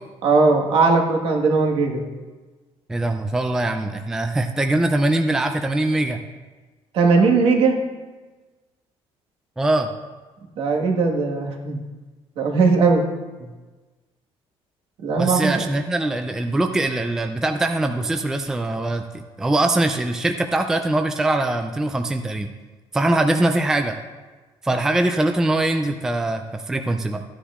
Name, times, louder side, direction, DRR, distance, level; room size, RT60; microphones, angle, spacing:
voice 1, 0.2-2.0 6.9-7.8 10.6-11.8 12.4-13.0 15.0-15.6, right 4 dB, 60° right, 1 dB, 1.5 m, -18 dB
voice 2, 2.9-6.2 9.6-9.9 15.2-22.5 22.9-24.0 24.6-27.2, right 2 dB, 5° right, 6 dB, 0.3 m, -22 dB
14.5 x 9.9 x 2.4 m, 1.3 s
cardioid pair, 170°, 10 cm